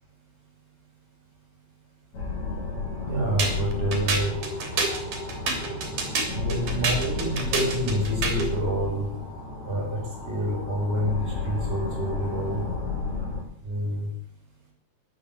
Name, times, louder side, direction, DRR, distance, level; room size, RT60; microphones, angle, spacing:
sound 1, 2.1-13.4, left 3 dB, 65° left, 7.1 m, -32 dB
voice 1, 3.1-4.3 6.3-9.1 9.7-10.0 10.2-12.6 13.6-14.1, equal, 15° right, -2 dB, 7.2 m, -28 dB
sound 2, 3.4-8.5, right 4 dB, 85° right, 4.6 m, -28 dB
13.0 x 11.0 x 8.1 m, 0.63 s
omnidirectional pair, 3.4 m